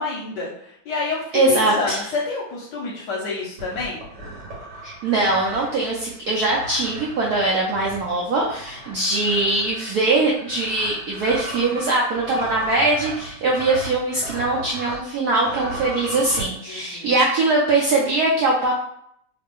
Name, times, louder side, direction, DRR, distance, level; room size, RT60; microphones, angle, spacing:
voice 1, 0.0-4.0 16.7-17.1, left 3 dB, 70° left, -3 dB, 1.1 m, -29 dB
voice 2, 1.3-2.0 4.8-18.7, right 2 dB, 75° right, -3 dB, 0.8 m, -21 dB
sound 1, 3.6-15.0 15.3-16.5, right 2 dB, 45° right, 1.3 m, -36 dB
3.3 x 2.5 x 3.5 m, 0.71 s
omnidirectional pair, 2.4 m